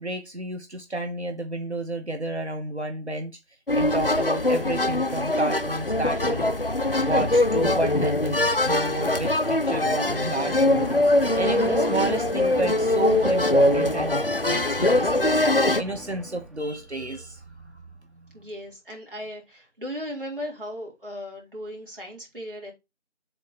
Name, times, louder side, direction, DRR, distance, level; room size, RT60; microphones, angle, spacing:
voice 1, 0.0-3.3 3.7-6.5 7.0-15.4 15.8-17.4, right 2 dB, 65° right, 1.3 m, -31 dB
sound 1, 3.7-15.8, left 1 dB, 50° left, 0.5 m, -22 dB
sound 2, 10.0-16.9, equal, ahead, 0.4 m, -44 dB
voice 2, 18.3-22.7, equal, 50° right, 3.3 m, -37 dB
7.5 x 3.0 x 5.2 m
figure-of-eight pair, 180°, 35 cm